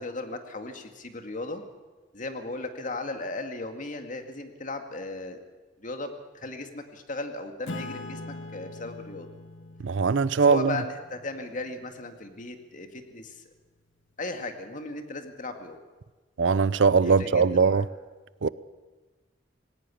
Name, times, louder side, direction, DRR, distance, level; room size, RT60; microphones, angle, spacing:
voice 1, 0.0-1.6 2.1-5.4 5.8-9.3 10.4-13.4 14.2-15.8 17.0-17.8, left 2 dB, 45° left, 6 dB, 2.1 m, -36 dB
Acoustic guitar / Strum, 7.7-12.6, left 2 dB, 85° left, 1.6 m, -43 dB
voice 2, 9.8-10.8 16.4-17.9 18.4-18.5, right 5 dB, 70° right, 18 dB, 0.6 m, -21 dB
19.0 x 17.5 x 8.5 m, 1.3 s
head